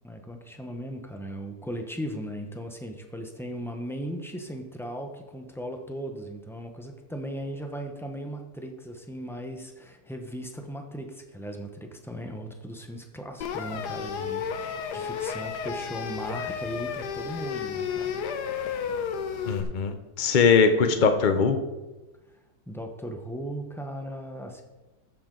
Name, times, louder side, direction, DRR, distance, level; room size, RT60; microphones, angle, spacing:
voice 1, 0.0-18.2 18.5-18.7 22.7-24.6, equal, 5° left, 3 dB, 0.5 m, -37 dB
sound 1, 13.4-19.6, left 7 dB, 70° left, 1.3 m, -32 dB
voice 2, 19.5-21.6, left 5 dB, 40° left, 7 dB, 0.7 m, -21 dB
14.0 x 6.9 x 3.9 m, 1.1 s
omnidirectional pair, 1.8 m